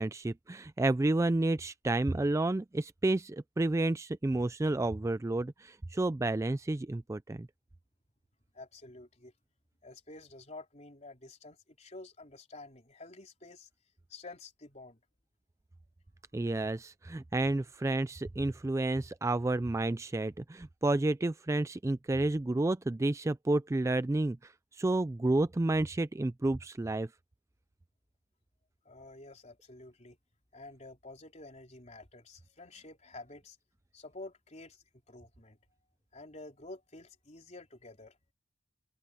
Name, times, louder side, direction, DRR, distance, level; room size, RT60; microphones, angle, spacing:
voice 1, 0.0-7.5 16.3-27.1, right 2 dB, 15° right, 0.3 m, -30 dB
voice 2, 8.5-9.3 9.8-13.7 14.1-15.0 28.9-30.2 30.5-33.6 33.9-35.6 36.1-38.2, left 2 dB, 35° left, 3.7 m, -50 dB
open air
head